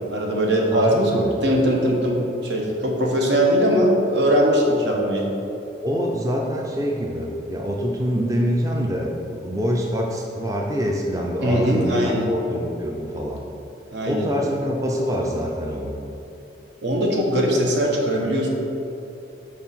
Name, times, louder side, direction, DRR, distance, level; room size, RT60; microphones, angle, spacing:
voice 1, 0.1-5.3 11.4-12.3 13.9-14.3 16.8-18.5, equal, 75° right, -1 dB, 1.2 m, -20 dB
voice 2, 0.7-1.3 5.8-13.4 14.1-16.0, equal, 20° right, -1 dB, 0.5 m, -25 dB
5.6 x 4.7 x 5.5 m, 2.9 s
head